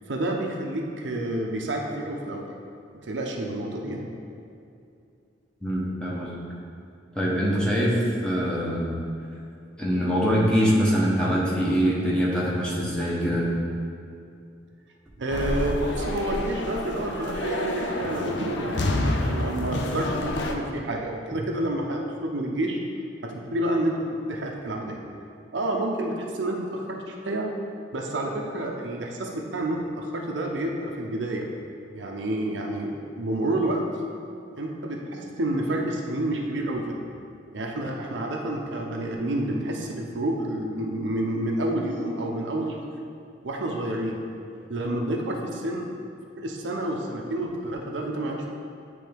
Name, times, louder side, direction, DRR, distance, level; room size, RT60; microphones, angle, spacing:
voice 1, 0.1-2.5 3.0-4.1 15.2-22.8 23.2-25.0 25.5-27.5 27.9-31.5 31.9-33.8 34.6-37.0 37.5-42.8 43.4-44.2 44.7-45.9 46.4-48.5, right 1 dB, 75° right, 0 dB, 0.7 m, -29 dB
voice 2, 5.6-6.3 7.1-8.9 9.8-13.5, equal, 5° left, -6 dB, 1.1 m, -23 dB
sound 1, 15.3-20.5, left 1 dB, 70° left, 0.5 m, -28 dB
9.2 x 3.4 x 3.5 m, 2.5 s
head